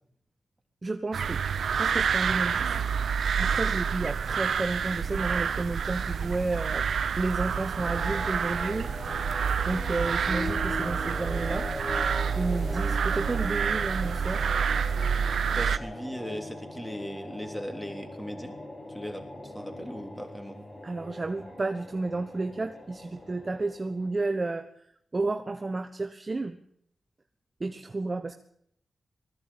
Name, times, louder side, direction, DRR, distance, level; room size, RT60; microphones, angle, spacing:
voice 1, 0.8-1.4 1.8-2.8 3.4-6.9 7.2-8.9 9.6-11.7 12.3-14.4 20.8-24.7 25.1-26.6 27.6-28.3, right 3 dB, 30° right, 7 dB, 1.1 m, -31 dB
sound 1, 1.1-15.8, right 7 dB, 75° right, 0.9 m, -28 dB
sound 2, 7.6-24.2, left 1 dB, 25° left, 5.8 m, -40 dB
voice 2, 15.5-18.5 18.9-20.6, equal, ahead, 4 dB, 3.4 m, -38 dB
20.0 x 15.5 x 8.8 m, 0.71 s
wide cardioid pair, 100°, 0 cm